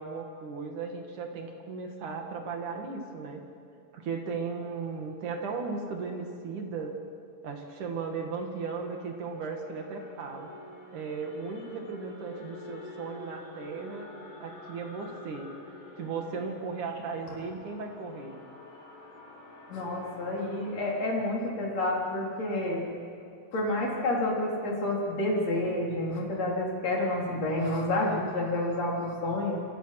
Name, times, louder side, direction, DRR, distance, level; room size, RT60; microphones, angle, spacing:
voice 1, 0.0-3.4 3.9-7.0 7.4-10.5 10.9-14.1 14.4-15.5 16.0-18.4, right 4 dB, 50° right, 3 dB, 3.1 m, -36 dB
sound 1, 8.2-20.9, left 2 dB, 65° left, 8.1 m, -48 dB
voice 2, 19.7-22.8 23.5-29.6, left 1 dB, 40° left, -2 dB, 4.8 m, -29 dB
27.5 x 26.0 x 6.0 m, 2.4 s
omnidirectional pair, 5.2 m